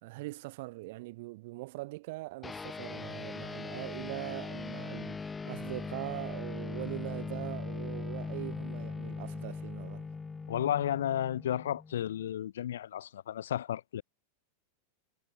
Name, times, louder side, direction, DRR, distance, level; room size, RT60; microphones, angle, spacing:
voice 1, 0.0-10.1, right 21 dB, 60° right, 1.3 m, -41 dB
sound 1, 2.4-12.2, left 4 dB, 15° left, 0.7 m, -40 dB
voice 2, 10.5-14.0, left 11 dB, 90° left, 0.8 m, -33 dB
supercardioid pair, 135°, 0 cm